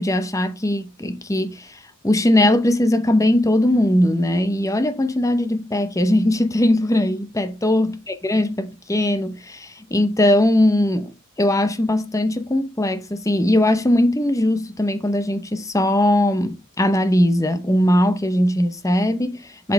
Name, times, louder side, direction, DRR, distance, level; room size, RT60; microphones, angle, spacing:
voice 1, 0.0-19.7, left 1 dB, 15° left, 0.7 m, -20 dB
7.5 x 5.1 x 3.5 m
head